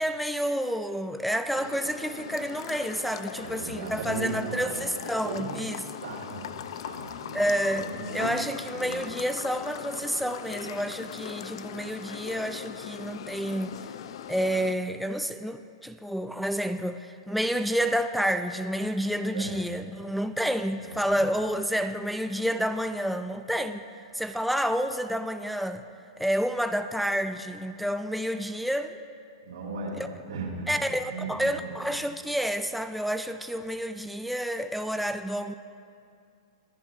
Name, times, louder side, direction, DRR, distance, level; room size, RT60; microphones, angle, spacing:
voice 1, 0.0-5.8 7.3-13.8 14.3-23.8 24.1-25.8 26.2-28.9 30.7-35.5, equal, ahead, 8 dB, 0.3 m, -29 dB
sound 1, 1.5-14.7, left 9 dB, 70° left, 0.5 m, -40 dB
voice 2, 3.3-4.8 5.2-5.7 6.0-8.3 8.7-9.0 19.3-19.6 20.8-21.2 29.4-31.8, right 3 dB, 85° right, -3 dB, 3.1 m, -37 dB
22.0 x 10.5 x 2.5 m, 2.4 s
hypercardioid pair, 130°, 3 cm